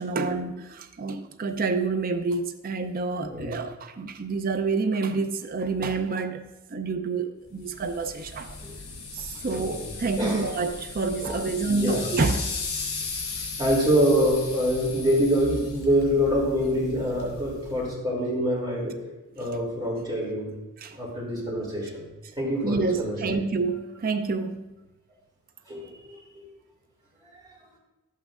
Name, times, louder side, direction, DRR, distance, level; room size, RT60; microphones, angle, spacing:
voice 1, 0.0-6.4 6.7-8.6 9.1-12.6 20.8-21.0 22.6-24.8, right 3 dB, 40° right, 0.5 m, -28 dB
voice 2, 3.2-3.6 8.6-8.7 9.5-10.5 11.2-11.4 11.7-12.1 13.6-18.9 19.4-20.5 21.0-22.0 22.4-23.2 25.7-26.4 27.3-27.4, equal, 20° right, 2.8 m, -26 dB
sound 1, 7.6-17.9, left 4 dB, 75° left, 2.8 m, -37 dB
11.5 x 8.4 x 2.5 m
head